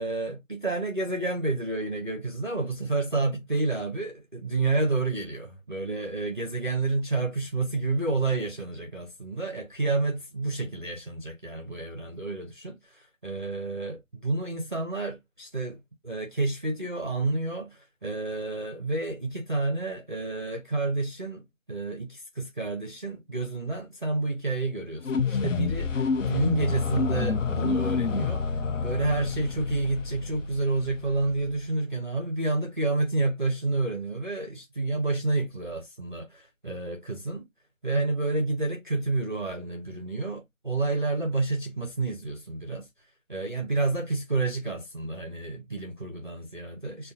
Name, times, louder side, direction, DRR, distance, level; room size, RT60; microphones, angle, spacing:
voice 1, 0.0-28.4 28.8-37.5 37.8-42.9 43.3-47.1, right 3 dB, 40° right, 0.5 m, -29 dB
sound 1, 25.0-31.7, left 5 dB, 65° left, 0.6 m, -29 dB
5.2 x 2.2 x 2.6 m
figure-of-eight pair, 170°, 40 cm